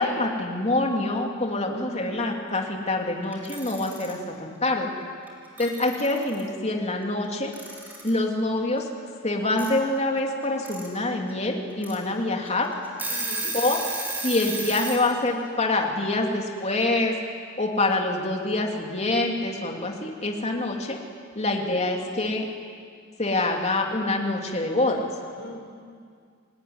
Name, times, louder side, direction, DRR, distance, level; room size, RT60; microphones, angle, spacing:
voice 1, 0.0-4.9 5.6-7.5 8.0-8.9 9.2-12.7 13.5-13.8 14.2-17.1 17.6-21.0 21.3-22.5 23.2-25.0, left 2 dB, 35° left, 1 dB, 3.1 m, -25 dB
voice 2, 1.7-2.1 13.1-13.5 21.4-21.8 25.4-25.6, left 2 dB, 80° left, 3 dB, 4.8 m, -42 dB
Alarm / Clock, 3.3-4.1 5.3-5.4 5.6-6.4 7.5-8.2 9.6-9.7 10.4-10.9 11.3-11.4 11.8-11.9 12.5-12.6 12.8-15.0, right 3 dB, 10° right, 4.8 m, -32 dB
29.5 x 19.5 x 9.7 m, 2.2 s
head